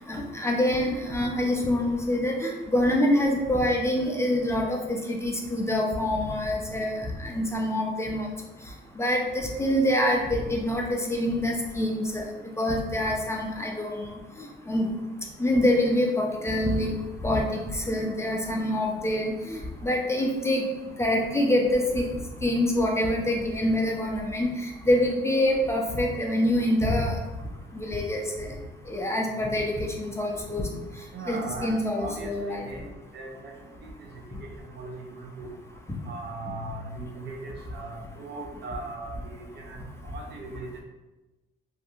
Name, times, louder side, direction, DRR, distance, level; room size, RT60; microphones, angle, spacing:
voice 1, 0.1-8.3 9.0-12.2 12.6-14.1 14.4-14.9 15.4-16.9 17.2-20.6 21.0-22.1 22.4-24.5 24.8-27.2 27.7-28.5 28.9-30.7 31.3-32.6, left 1 dB, 15° left, -1 dB, 0.4 m, -26 dB
voice 2, 31.1-32.9 33.1-33.5 33.8-34.1 34.4-34.5 34.8-35.5 36.0-40.8, right 3 dB, 60° right, 2 dB, 0.5 m, -39 dB
2.7 x 2.5 x 2.4 m, 1.1 s
cardioid pair, 90°, 20 cm